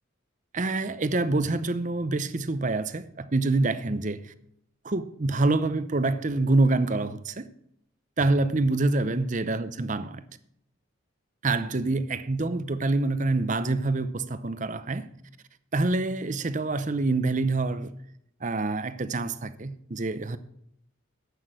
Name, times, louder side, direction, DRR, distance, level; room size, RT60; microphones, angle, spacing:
voice 1, 0.5-4.3 4.8-7.5 8.2-10.2 11.4-15.1 15.7-17.9 18.4-20.4, right 2 dB, 35° right, 0.7 m, -26 dB
11.5 x 8.1 x 6.4 m
head